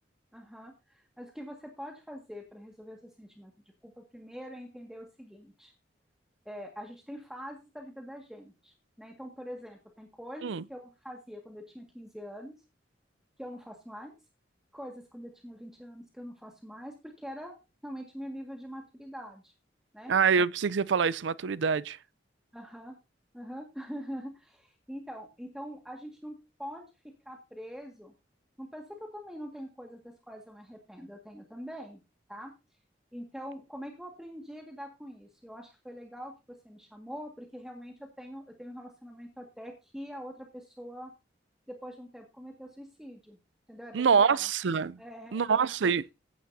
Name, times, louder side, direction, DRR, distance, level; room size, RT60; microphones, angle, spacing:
voice 1, 0.3-3.5 3.8-5.7 6.5-12.5 13.4-14.2 14.7-17.6 17.8-19.5 19.9-20.1 22.5-23.0 23.3-26.9 27.3-28.1 28.6-32.0 32.3-32.5 33.1-41.1 41.7-43.4 43.7-44.5 45.0-45.5, equal, 5° right, 1.8 m, -44 dB
voice 2, 20.1-22.0 43.9-45.0 45.3-46.0, right 6 dB, 80° right, 0.5 m, -25 dB
15.5 x 10.0 x 2.7 m
head